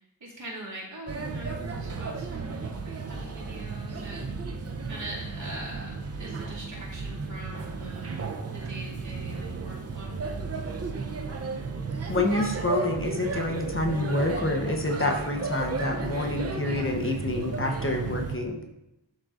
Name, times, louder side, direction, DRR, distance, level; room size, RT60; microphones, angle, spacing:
voice 1, 0.0-4.3 4.8-10.1, right 1 dB, 75° right, -6 dB, 2.3 m, -42 dB
Male speech man speaking / Child speech kid speaking / Chatter, 1.1-18.4, right 4 dB, 35° right, 0.6 m, -34 dB
voice 2, 12.1-18.6, left 2 dB, 30° left, 2 dB, 0.8 m, -28 dB
11.5 x 3.8 x 2.5 m, 0.90 s
wide cardioid pair, 70°, 45 cm